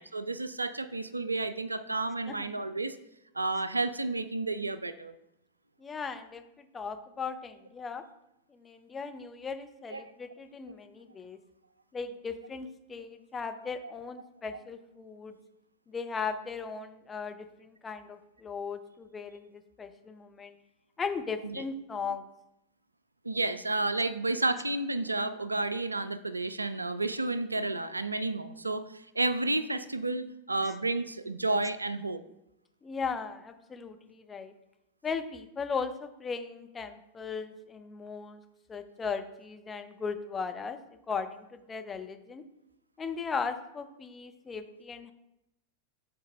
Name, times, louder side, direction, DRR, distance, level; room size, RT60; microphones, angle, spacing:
voice 1, 0.0-3.0 3.3-5.1 9.9-10.0 13.8-13.9 21.4-21.6 23.2-32.2, right 2 dB, 80° right, 14 dB, 0.3 m, -31 dB
voice 2, 5.8-8.0 8.5-11.4 11.9-15.3 15.9-20.5 21.0-22.2 30.6-30.8 32.8-34.5 35.0-38.4 38.7-40.8 41.1-42.4 43.0-45.1, left 5 dB, 20° left, 7 dB, 0.5 m, -37 dB
5.8 x 4.1 x 5.1 m, 0.86 s
figure-of-eight pair, 90°, 0 cm